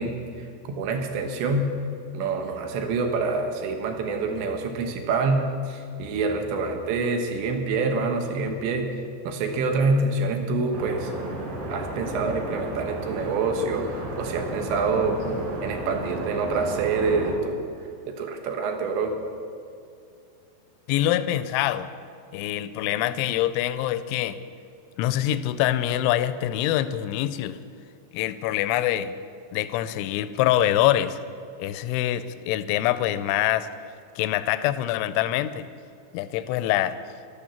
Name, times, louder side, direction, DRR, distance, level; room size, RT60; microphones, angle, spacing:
voice 1, 0.0-1.7 2.1-8.9 9.3-11.1 11.7-15.2 15.6-17.6 18.1-19.2, right 3 dB, 75° right, 4 dB, 3.5 m, -26 dB
sound 1, 10.7-17.3, right 2 dB, 55° right, 3.8 m, -33 dB
voice 2, 20.9-21.9 22.3-24.4 25.0-27.6 28.1-29.1 29.5-31.2 31.6-33.7 34.2-35.7 36.1-37.0, left 13 dB, 85° left, 13 dB, 3.0 m, -24 dB
12.5 x 12.0 x 7.1 m, 2.4 s
omnidirectional pair, 5.4 m